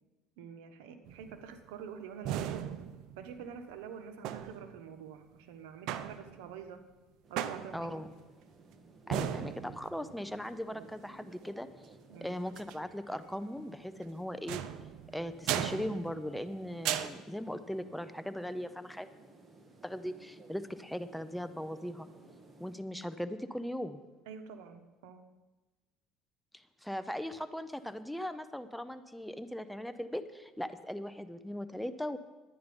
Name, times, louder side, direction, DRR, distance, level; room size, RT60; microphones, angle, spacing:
voice 1, 0.4-2.7 3.2-6.8 7.3-8.1 9.1-9.3 10.7-10.9 12.1-12.4 24.3-25.2, right 7 dB, 85° right, 8 dB, 1.1 m, -47 dB
sound 1, 1.1-1.6 2.2-3.5 4.2-4.9 5.9-6.6 7.4-8.1 9.1-10.1 12.5-12.8 14.5-16.5 16.8-17.1, right 10 dB, 70° right, 0.6 m, -37 dB
sound 2, 7.2-22.8, right 2 dB, 25° right, 1.4 m, -57 dB
voice 2, 7.7-8.1 9.1-11.7 12.2-14.6 15.1-19.1 19.8-22.1 22.6-24.0 26.8-32.2, equal, ahead, 11 dB, 0.6 m, -39 dB
11.0 x 9.5 x 5.3 m, 1.2 s
cardioid pair, 115°, 0 cm